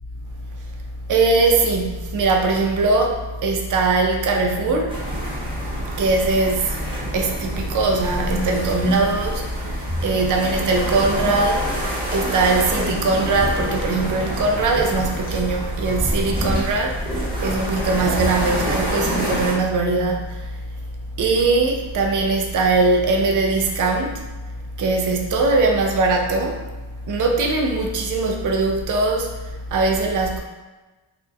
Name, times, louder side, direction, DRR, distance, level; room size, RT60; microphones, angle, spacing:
voice 1, 1.1-5.0 5.8-6.8 7.1-11.7 12.1-20.5 21.2-24.2 24.8-26.6 27.1-29.3 29.7-30.4, right 3 dB, 40° right, 1 dB, 0.5 m, -21 dB
sound 1, 4.9-19.5, equal, 10° right, 0.9 m, -26 dB
2.6 x 2.1 x 2.4 m, 1.2 s
cardioid pair, 50°, 49 cm